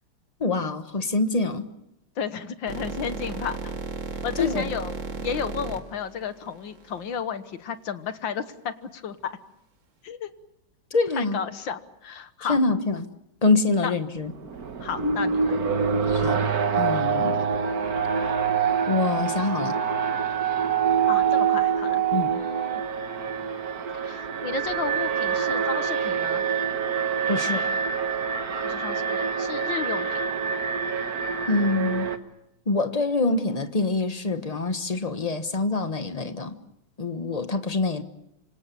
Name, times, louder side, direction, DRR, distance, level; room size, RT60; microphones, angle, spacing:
voice 1, 0.4-1.7 4.4-4.7 10.9-11.4 12.5-13.1 13.4-14.3 16.0-16.4 16.8-17.4 18.9-19.8 22.1-22.3 27.3-27.6 31.5-32.1 32.7-36.6 37.0-38.0, left 3 dB, 25° left, 9 dB, 1.1 m, -25 dB
voice 2, 2.2-3.7 4.2-9.4 10.0-10.3 11.2-12.6 13.8-13.9 14.8-15.6 21.1-22.0 22.3-22.8 23.9-26.4 28.6-30.2, left 7 dB, 75° left, 11 dB, 2.0 m, -33 dB
sound 1, 2.7-7.2, right 4 dB, 75° right, 3.0 m, -34 dB
Alarm, 14.3-32.2, right 6 dB, 50° right, 1.7 m, -26 dB
26.5 x 25.5 x 7.0 m, 0.85 s
omnidirectional pair, 2.1 m